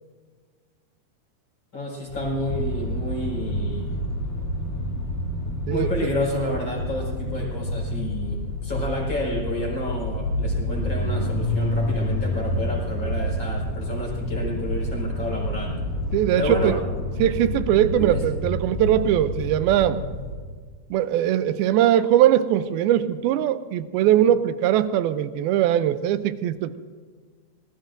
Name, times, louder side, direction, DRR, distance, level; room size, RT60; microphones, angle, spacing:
voice 1, 1.7-3.9 5.7-15.7 16.4-17.2 17.9-18.2, left 1 dB, 30° left, -3 dB, 5.1 m, -30 dB
sound 1, 2.1-20.4, left 1 dB, 55° left, 3.6 m, -28 dB
voice 2, 16.1-16.8 17.2-20.0 20.9-26.8, right 11 dB, 80° right, 12 dB, 2.4 m, -21 dB
25.5 x 20.0 x 2.6 m, 1.6 s
omnidirectional pair, 4.6 m